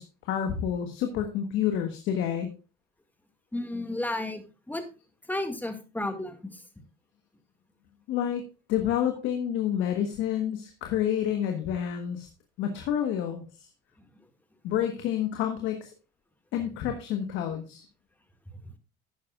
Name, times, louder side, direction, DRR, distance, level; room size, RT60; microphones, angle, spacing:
voice 1, 0.0-2.5 8.1-8.4 8.7-12.3 12.6-13.7 14.6-15.9 16.5-17.8, left 9 dB, 65° left, 5 dB, 1.4 m, -29 dB
voice 2, 3.5-4.8 5.3-6.6, left 1 dB, 10° left, 7 dB, 2.1 m, -33 dB
12.0 x 9.5 x 2.4 m, 0.32 s
hypercardioid pair, 65°, 21 cm